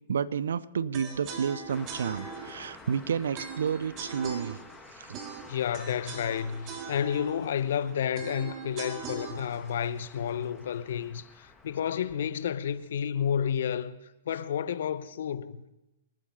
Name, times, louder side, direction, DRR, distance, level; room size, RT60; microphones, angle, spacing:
voice 1, 0.1-4.6 5.0-5.2, right 7 dB, 70° right, 0.6 m, -30 dB
sound 1, 0.9-11.0, right 5 dB, 35° right, 2.3 m, -42 dB
Car passing by, 1.7-13.1, left 4 dB, 10° left, 1.4 m, -52 dB
voice 2, 5.5-14.0 14.3-15.7, left 8 dB, 60° left, 0.9 m, -31 dB
27.0 x 9.2 x 5.6 m
figure-of-eight pair, 115°, 0 cm